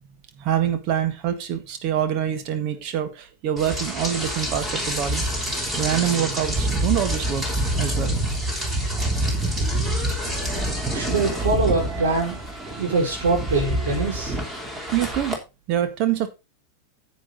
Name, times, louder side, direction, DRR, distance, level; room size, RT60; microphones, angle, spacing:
voice 1, 0.4-5.2 5.8-7.4 7.8-8.2 14.9-15.4 15.7-16.3, right 10 dB, 40° right, 1.8 m, -25 dB
Rain, 3.6-15.3, right 1 dB, 10° right, 3.3 m, -26 dB
voice 2, 10.9-12.4 12.8-14.3, right 3 dB, 60° right, 5.4 m, -23 dB
10.0 x 8.3 x 4.1 m
figure-of-eight pair, 90°, 0 cm